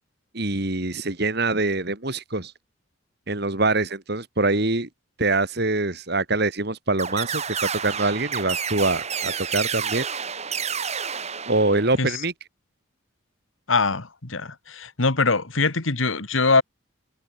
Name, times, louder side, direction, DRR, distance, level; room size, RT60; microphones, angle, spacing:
voice 1, 0.3-2.5 3.3-4.9 5.2-10.1 11.5-12.3, right 2 dB, 55° right, 2.7 m, -24 dB
sound 1, 7.0-12.1, right 7 dB, 35° right, 2.8 m, -30 dB
voice 2, 13.7-16.6, left 3 dB, 75° left, 2.1 m, -22 dB
head